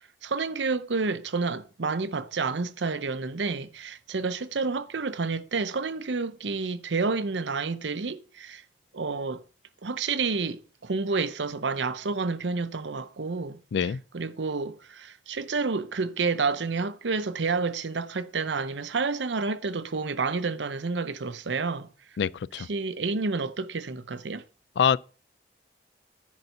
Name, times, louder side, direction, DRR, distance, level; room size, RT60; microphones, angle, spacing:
voice 1, 0.2-8.6 8.9-9.4 9.8-21.9 22.6-24.4, right 4 dB, 90° right, 0.7 m, -29 dB
voice 2, 13.7-14.0 22.2-22.7 24.8-25.0, left 7 dB, 80° left, 0.3 m, -24 dB
10.5 x 4.1 x 6.9 m
head